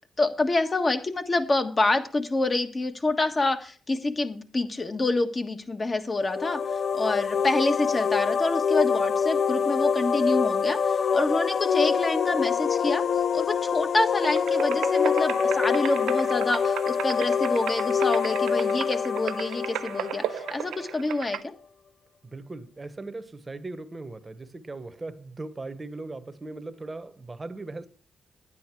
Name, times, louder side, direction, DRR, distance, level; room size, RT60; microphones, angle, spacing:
voice 1, 0.2-13.0 13.3-21.4, left 2 dB, 35° left, 1.5 m, -27 dB
sound 1, 6.2-20.8, left 6 dB, 55° left, 0.4 m, -25 dB
sound 2, 14.2-21.4, right 11 dB, 85° right, 0.4 m, -36 dB
voice 2, 22.2-27.9, right 2 dB, 25° right, 1.1 m, -38 dB
10.5 x 9.2 x 4.6 m
cardioid pair, 70°, 0 cm